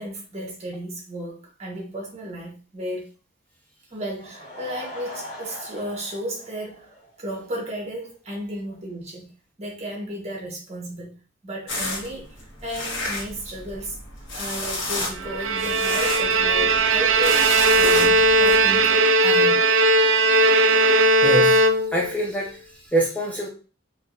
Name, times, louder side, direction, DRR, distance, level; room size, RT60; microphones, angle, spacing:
voice 1, 0.0-3.1 3.9-6.9 7.2-9.3 9.6-11.1 11.4-12.3 12.6-13.9 14.3-17.4 17.8-19.0 19.2-19.6, equal, 35° right, -1 dB, 1.4 m, -34 dB
Laughter / Crowd, 4.0-7.5 7.8-7.9 8.4-8.5 8.7-8.8, equal, 35° left, 1.7 m, -41 dB
sound 1, 11.7-18.6, left 2 dB, 85° left, 1.5 m, -32 dB
Bowed string instrument, 15.2-22.2, right 2 dB, 85° right, 0.4 m, -18 dB
voice 2, 21.2-21.6 21.9-22.6 22.9-23.5, right 1 dB, 10° left, -2 dB, 0.5 m, -24 dB
3.8 x 2.8 x 2.7 m, 0.35 s
head